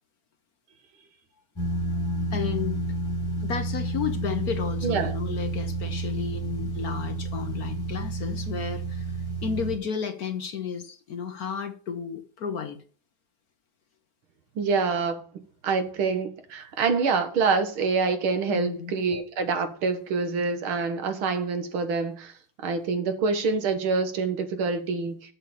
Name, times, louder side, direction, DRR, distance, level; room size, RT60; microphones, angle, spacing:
sound 1, 1.6-9.8, right 2 dB, 10° left, 4.1 m, -30 dB
voice 1, 2.3-2.8 3.4-9.1 9.4-12.8 18.5-18.9, left 7 dB, 55° left, 1.2 m, -32 dB
voice 2, 4.8-5.2 14.6-15.2 15.6-22.3 22.6-25.3, right 4 dB, 80° right, 2.2 m, -26 dB
7.5 x 6.7 x 6.9 m
omnidirectional pair, 2.3 m